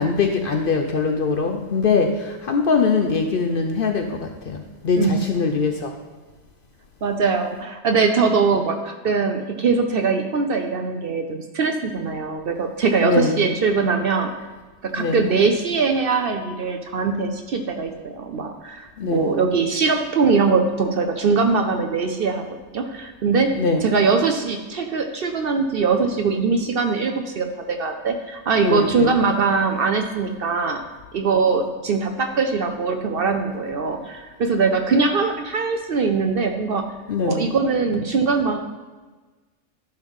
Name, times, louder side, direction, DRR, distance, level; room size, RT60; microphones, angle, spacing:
voice 1, 0.0-5.9 13.0-13.5 15.0-15.2 19.0-19.3 23.5-23.9 28.6-29.1 37.1-37.5, left 4 dB, 55° left, 4 dB, 0.7 m, -22 dB
voice 2, 5.0-5.3 7.0-14.3 14.8-22.4 22.7-23.5 23.8-30.8 31.1-36.9 37.2-38.6, right 4 dB, 55° right, 5 dB, 0.7 m, -22 dB
11.5 x 5.4 x 3.6 m, 1.3 s
omnidirectional pair, 1.3 m